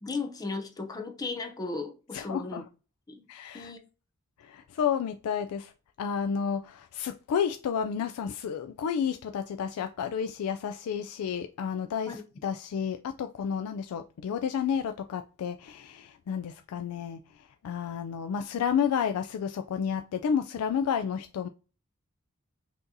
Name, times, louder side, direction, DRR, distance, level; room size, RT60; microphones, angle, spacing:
voice 1, 0.0-2.6 3.1-3.3 3.5-3.8 12.1-12.2, left 3 dB, 20° left, 0.5 m, -36 dB
voice 2, 2.1-2.6 3.3-3.7 4.4-5.7 6.0-12.1 12.4-17.2 17.6-21.5, left 7 dB, 85° left, 0.3 m, -31 dB
5.8 x 2.8 x 2.6 m
head